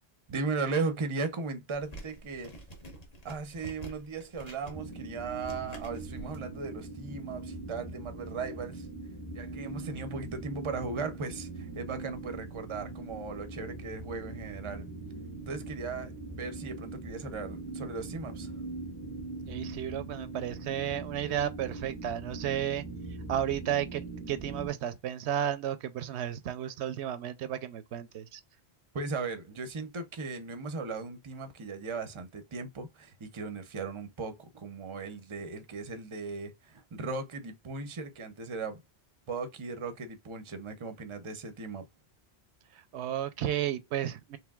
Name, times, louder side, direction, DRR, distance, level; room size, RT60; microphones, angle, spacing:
voice 1, 0.3-2.5 3.2-8.9 9.3-14.9 15.5-18.5 28.9-38.8 39.3-41.9, right 4 dB, 35° right, 0.7 m, -37 dB
sound 1, 1.7-6.4, right 2 dB, 40° left, 1.2 m, -47 dB
sound 2, 4.7-24.7, right 3 dB, 15° left, 1.2 m, -41 dB
voice 2, 19.5-22.8 23.3-28.4 42.9-44.4, right 10 dB, 85° right, 0.9 m, -33 dB
4.9 x 3.2 x 2.3 m
omnidirectional pair, 1.1 m